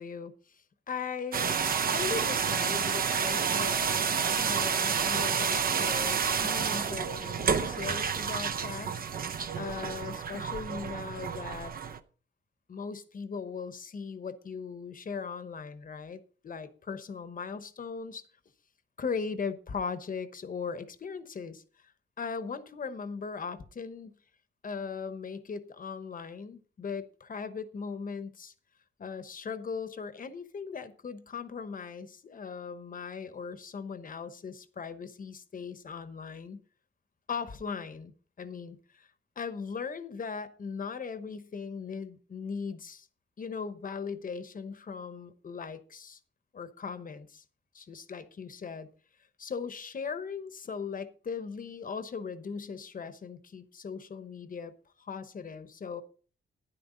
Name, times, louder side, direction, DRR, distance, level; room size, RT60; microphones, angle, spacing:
voice 1, 0.0-1.6 1.9-9.0 9.3-11.7 12.7-18.3 19.0-21.6 22.2-24.1 24.6-28.5 29.0-36.6 37.3-38.1 38.4-39.1 39.4-43.1 43.4-46.2 46.5-47.4 47.7-48.9 49.4-54.7 55.0-56.0, left 5 dB, 40° left, 1.0 m, -39 dB
sound 1, 1.3-12.0, right 6 dB, 45° right, 0.7 m, -29 dB
12.0 x 10.5 x 3.9 m
wide cardioid pair, 165°, 21 cm